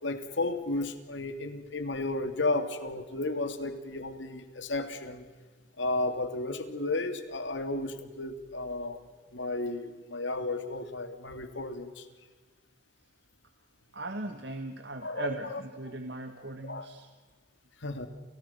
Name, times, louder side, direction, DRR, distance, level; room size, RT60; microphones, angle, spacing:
voice 1, 0.0-5.3 5.8-9.0 9.3-12.1 15.0-15.6 16.6-16.9 17.8-18.1, left 2 dB, 75° left, 8 dB, 2.7 m, -33 dB
voice 2, 13.9-17.1, right 2 dB, 60° right, 7 dB, 1.8 m, -38 dB
30.0 x 29.5 x 5.9 m, 1.4 s
head